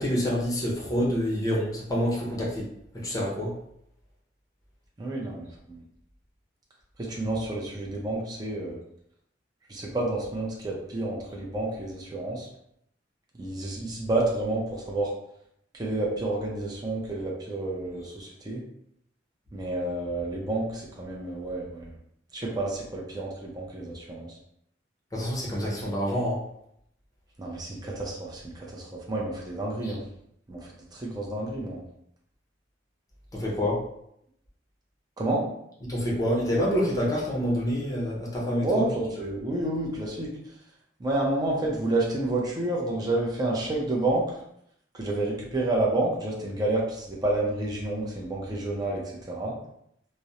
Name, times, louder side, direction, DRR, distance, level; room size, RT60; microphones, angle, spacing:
voice 1, 0.0-2.7 3.0-3.5 25.1-26.4 29.8-29.9 33.3-33.8 35.9-38.9, equal, 20° left, -4 dB, 0.7 m, -27 dB
voice 2, 5.0-5.8 7.0-8.8 9.7-12.5 13.4-15.1 15.7-18.6 19.5-21.9 22.3-24.3 27.4-30.0 30.5-30.6 30.9-31.8 35.2-35.4 38.6-40.3 41.0-44.3 44.9-49.6, right 2 dB, 20° right, -3 dB, 0.5 m, -29 dB
2.4 x 2.0 x 2.8 m, 0.73 s
head